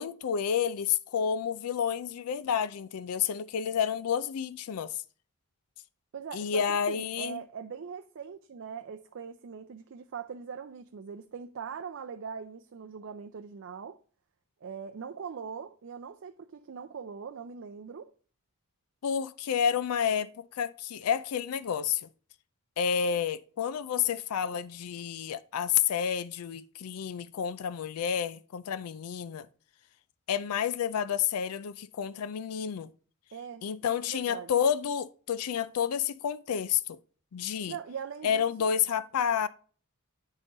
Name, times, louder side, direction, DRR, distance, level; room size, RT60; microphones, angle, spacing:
voice 1, 0.0-4.9 6.3-7.4 19.0-22.1 22.8-29.5 30.3-32.9 33.6-37.0 37.3-37.8 38.2-39.5, left 8 dB, 85° left, 0.4 m, -30 dB
voice 2, 6.1-14.0 14.6-18.1 33.3-33.7 34.1-34.5 37.7-38.7, right 6 dB, 60° right, 0.4 m, -41 dB
9.8 x 3.7 x 3.9 m
head